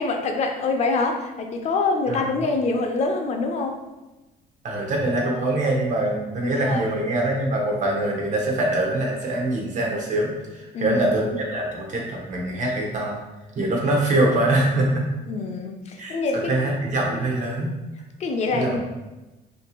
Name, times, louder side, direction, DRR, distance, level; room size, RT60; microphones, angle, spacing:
voice 1, 0.0-3.8 5.1-5.8 6.4-6.9 10.7-11.1 15.3-16.5 18.2-18.8, left 3 dB, 40° left, 4 dB, 0.4 m, -25 dB
voice 2, 4.6-13.2 13.6-15.0 16.0-17.7 18.5-18.8, right 1 dB, 45° right, 0 dB, 0.7 m, -24 dB
2.7 x 2.6 x 2.3 m, 1.1 s
cardioid pair, 110°, 17 cm